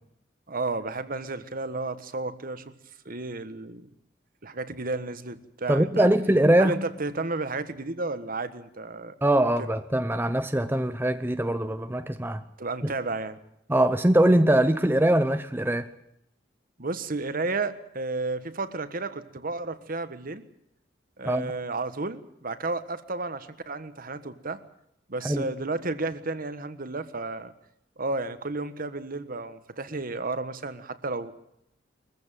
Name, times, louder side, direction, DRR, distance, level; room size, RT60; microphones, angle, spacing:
voice 1, 0.5-2.7 3.0-3.9 4.4-6.1 6.6-9.1 9.6-9.8 12.6-13.4 16.8-20.4 21.2-24.6 25.1-27.5 28.0-31.3, right 3 dB, 50° right, 1.4 m, -32 dB
voice 2, 5.7-6.8 9.2-12.4 12.8-12.9 13.7-15.9 21.3-21.5 25.2-25.5, right 1 dB, 10° right, 0.7 m, -22 dB
22.5 x 15.0 x 9.1 m
head